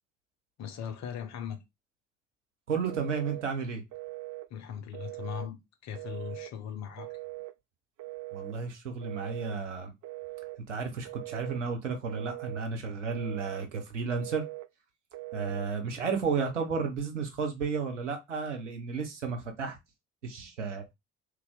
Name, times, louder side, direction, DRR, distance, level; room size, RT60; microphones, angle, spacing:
voice 1, 0.6-1.6 4.5-7.1, left 8 dB, 50° left, 0.9 m, -39 dB
voice 2, 2.7-3.8 8.3-9.9 10.7-14.5 15.3-19.8 20.2-20.8, right 5 dB, 80° right, 0.9 m, -33 dB
Telephone, 2.9-3.5 3.9-4.5 4.9-5.5 6.0-6.5 7.0-7.5 8.0-8.6 9.0-9.6 10.0-10.6 11.1-11.6 12.1-12.6 13.1-13.7 14.1-14.7 15.1-15.7, right 21 dB, 45° right, 0.4 m, -41 dB
3.3 x 3.1 x 3.7 m
figure-of-eight pair, 50°, 35 cm